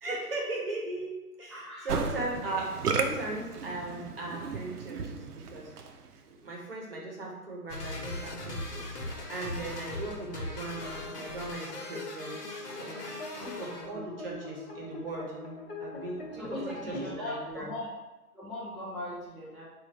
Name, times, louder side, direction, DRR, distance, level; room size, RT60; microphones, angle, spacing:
voice 1, 0.0-5.7 6.3-12.4 12.7-13.0 13.4-15.3 15.8-17.7, right 2 dB, 40° right, -2 dB, 0.8 m, -38 dB
voice 2, 1.5-1.9 13.3-13.9 16.3-17.9 18.3-19.6, left 1 dB, ahead, -9 dB, 0.3 m, -40 dB
Musical instrument, 1.9-6.1, right 5 dB, 75° right, 0.5 m, -34 dB
sound 1, 7.7-13.9, left 2 dB, 80° left, 1.1 m, -40 dB
sound 2, 7.9-17.1, left 2 dB, 40° left, 0.6 m, -44 dB
3.8 x 2.4 x 3.1 m, 1.1 s
hypercardioid pair, 160°, 46 cm